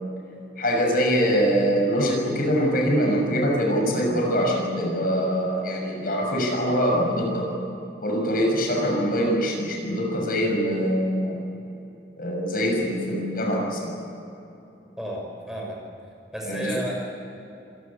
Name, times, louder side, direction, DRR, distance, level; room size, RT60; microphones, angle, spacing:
voice 1, 0.6-7.5 8.0-11.4 12.2-13.9 16.4-16.8, equal, 55° left, 0 dB, 6.5 m, -23 dB
voice 2, 15.0-15.8 16.3-17.0, right 1 dB, 5° right, -2 dB, 6.1 m, -31 dB
27.0 x 17.0 x 9.8 m, 2.9 s
head